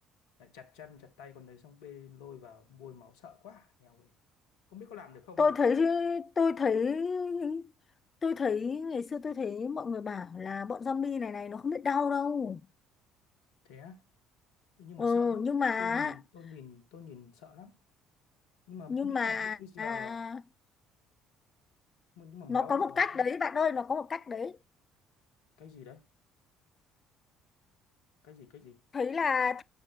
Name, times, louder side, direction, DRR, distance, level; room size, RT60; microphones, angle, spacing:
voice 1, 0.4-4.1 4.7-5.5 13.6-14.0 14.8-15.5 15.8-17.8 18.7-20.2 22.2-23.3 25.6-26.0 28.2-28.8, left 7 dB, 70° left, 1.1 m, -49 dB
voice 2, 5.4-7.7 8.2-12.6 15.0-16.1 18.9-20.4 22.5-24.6 28.9-29.6, left 5 dB, 35° left, 0.4 m, -30 dB
8.0 x 6.4 x 2.9 m
figure-of-eight pair, 55°, 0 cm